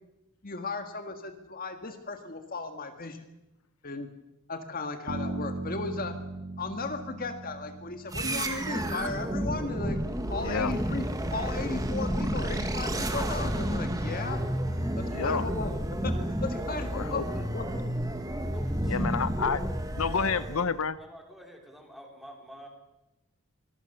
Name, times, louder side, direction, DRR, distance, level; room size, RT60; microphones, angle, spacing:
voice 1, 0.4-3.2 3.8-4.1 4.5-6.2 6.6-10.0 10.3-14.4 14.9-15.7 16.0-17.7, left 3 dB, 40° left, 7 dB, 1.8 m, -36 dB
Bass guitar, 5.1-9.1, right 2 dB, 70° right, 2.6 m, -38 dB
sound 1, 8.1-20.8, right 1 dB, 15° right, 1.9 m, -31 dB
voice 2, 10.4-10.7 15.1-15.4 16.9-17.2 18.9-19.6 20.0-21.0, left 5 dB, 75° left, 14 dB, 0.8 m, -29 dB
voice 3, 18.5-19.2 21.0-22.7, equal, ahead, 2 dB, 4.3 m, -49 dB
25.0 x 21.0 x 6.8 m, 0.96 s
head